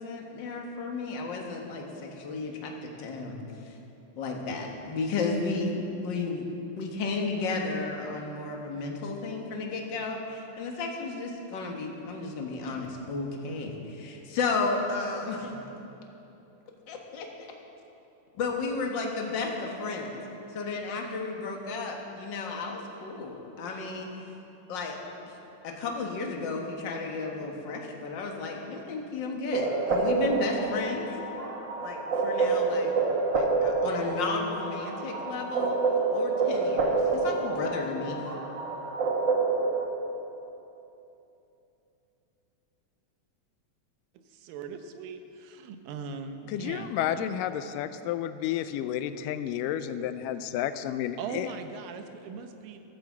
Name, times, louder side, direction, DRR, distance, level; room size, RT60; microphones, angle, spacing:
voice 1, 0.0-3.4 3.6-3.8 4.1-6.4 6.8-15.6 16.9-17.3 18.3-20.2 20.5-24.1 24.7-25.0 25.6-31.0 31.8-32.9 33.3-35.8 36.1-38.2, left 3 dB, 55° left, 1 dB, 1.3 m, -33 dB
sound 1, 29.5-39.8, right 3 dB, 60° right, 1.2 m, -28 dB
voice 2, 44.2-47.4 51.2-52.8, right 5 dB, 85° right, 7 dB, 2.6 m, -40 dB
voice 3, 46.5-51.5, left 11 dB, 80° left, 11 dB, 2.1 m, -31 dB
15.0 x 9.4 x 7.3 m, 2.9 s
omnidirectional pair, 4.0 m